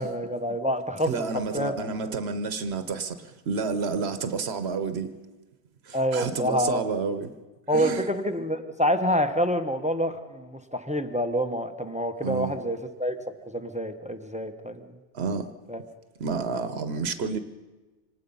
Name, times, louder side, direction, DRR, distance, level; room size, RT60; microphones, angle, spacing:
voice 1, 0.0-1.1 1.5-1.7 5.9-6.8 7.7-13.2 13.5-14.8 15.7-15.8, equal, 5° right, 8 dB, 1.0 m, -27 dB
voice 2, 1.0-5.1 5.8-7.3 7.7-8.1 12.2-12.6 15.1-15.5 16.2-17.4, right 5 dB, 80° right, 10 dB, 1.2 m, -30 dB
25.5 x 19.0 x 5.5 m, 1.2 s
omnidirectional pair, 1.1 m